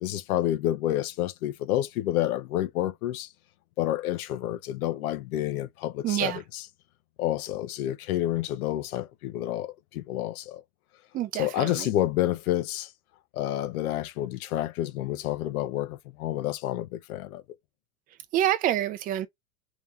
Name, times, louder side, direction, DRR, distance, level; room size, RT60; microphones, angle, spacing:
voice 1, 0.0-3.3 3.8-6.7 7.2-10.6 11.3-12.9 13.3-17.4, left 13 dB, 75° left, 0.8 m, -29 dB
voice 2, 6.0-6.4 11.1-11.9 18.3-19.3, right 12 dB, 20° right, 0.5 m, -27 dB
3.5 x 3.0 x 3.4 m
supercardioid pair, 140°, 44 cm